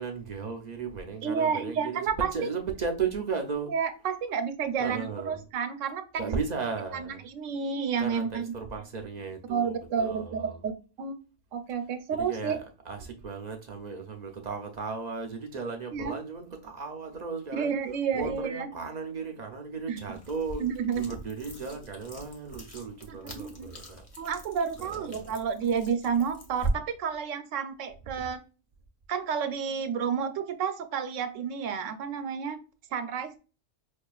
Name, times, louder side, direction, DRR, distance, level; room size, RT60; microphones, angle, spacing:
voice 1, 0.0-3.7 4.8-5.4 6.2-7.2 8.0-10.6 12.1-12.6 12.8-17.7 18.1-20.6 20.9-24.0 24.9-25.3 28.2-28.3, right 5 dB, 55° right, 0.5 m, -35 dB
voice 2, 1.2-2.3 3.7-6.0 6.9-8.5 9.5-11.2 11.5-12.6 15.9-16.1 17.5-18.7 19.9-20.0 20.6-21.1 23.1-23.7 24.2-28.4 29.1-32.6 32.9-33.4, right 6 dB, 80° right, 0.9 m, -30 dB
sound 1, 20.0-26.7, right 2 dB, 35° left, 0.7 m, -40 dB
5.3 x 2.4 x 2.3 m
omnidirectional pair, 1.3 m